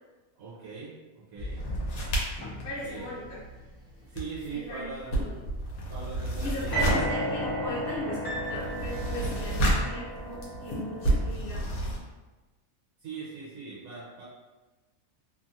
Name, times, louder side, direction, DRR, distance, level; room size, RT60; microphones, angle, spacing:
voice 1, 0.4-1.6 2.8-3.1 4.1-5.2 5.9-7.0 13.0-14.2, right 5 dB, 75° right, -7 dB, 1.0 m, -41 dB
sound 1, 1.4-6.0 6.6-6.9 7.2-7.3, left 2 dB, 35° right, 0.8 m, -44 dB
sound 2, 1.6-3.7 4.0-12.0, right 1 dB, 75° left, 1.1 m, -31 dB
sound 3, 2.4-3.4 6.7-11.3, right 1 dB, 30° left, 0.4 m, -34 dB
voice 2, 2.6-3.4 4.5-5.4 6.4-11.8, left 1 dB, 50° left, -8 dB, 1.0 m, -38 dB
2.8 x 2.2 x 2.6 m, 1.2 s
omnidirectional pair, 1.5 m